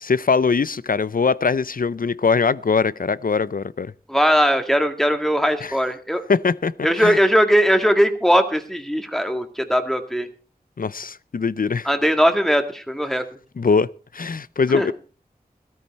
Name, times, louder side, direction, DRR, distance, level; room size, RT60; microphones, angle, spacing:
voice 1, 0.0-3.9 5.6-5.8 6.3-6.7 7.0-7.2 10.8-11.9 13.6-14.9, left 5 dB, 60° left, 0.5 m, -21 dB
voice 2, 4.1-6.2 6.8-10.3 11.9-13.2 14.7-14.9, equal, ahead, 1.8 m, -19 dB
13.5 x 13.5 x 4.2 m
wide cardioid pair, 50°, 16 cm